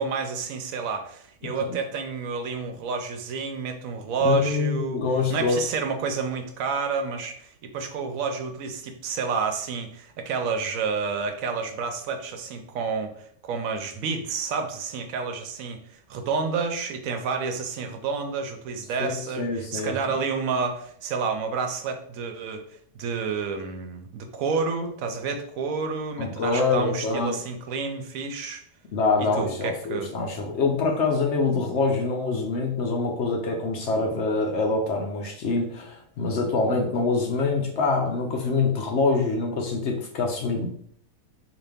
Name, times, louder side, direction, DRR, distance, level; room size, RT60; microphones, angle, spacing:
voice 1, 0.0-5.0 5.3-28.6 29.2-30.1, right 5 dB, 70° right, 6 dB, 0.9 m, -29 dB
voice 2, 4.2-5.6 19.0-19.9 26.2-27.4 28.9-40.7, left 3 dB, 60° left, 2 dB, 0.7 m, -25 dB
4.0 x 2.5 x 3.4 m, 0.65 s
omnidirectional pair, 1.7 m